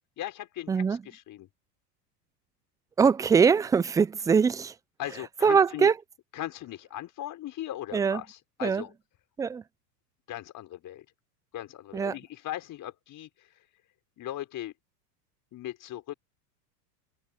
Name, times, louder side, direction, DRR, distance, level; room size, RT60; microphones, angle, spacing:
voice 1, 0.2-1.5 5.0-5.9 6.3-8.9 10.3-11.0 11.5-13.7 14.2-14.7 15.5-16.1, left 13 dB, 40° left, 4.9 m, -38 dB
voice 2, 0.7-1.0 3.0-4.7 5.4-5.9 7.9-8.2 8.6-8.8 9.4-9.6 11.9-12.2, right 6 dB, 10° right, 0.4 m, -22 dB
hypercardioid pair, 105°, 49 cm